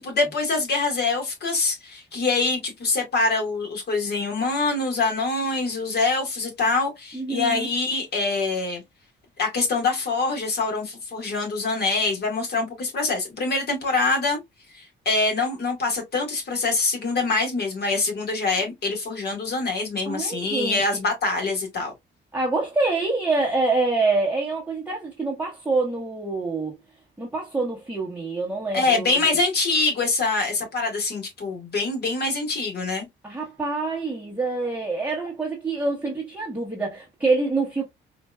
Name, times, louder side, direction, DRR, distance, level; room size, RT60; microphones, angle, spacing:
voice 1, 0.0-8.8 9.4-14.4 14.7-21.9 28.7-33.1, left 3 dB, 55° left, 1.8 m, -24 dB
voice 2, 7.1-7.7 20.1-21.0 22.3-26.8 27.2-29.3 33.2-37.8, right 3 dB, 5° right, 1.1 m, -26 dB
4.4 x 2.5 x 2.3 m
cardioid pair, 90°, 20 cm